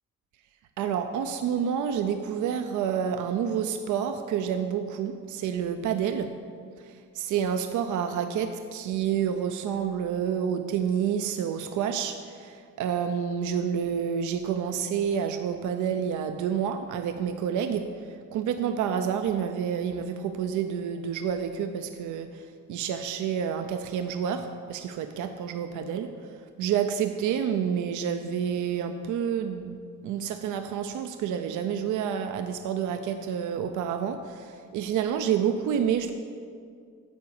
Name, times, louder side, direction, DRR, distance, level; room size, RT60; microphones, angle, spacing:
voice 1, 0.8-6.3 6.8-29.8 30.0-36.1, right 8 dB, 80° right, 7 dB, 0.5 m, -29 dB
9.3 x 4.7 x 7.0 m, 2.2 s
cardioid pair, 90°, 30 cm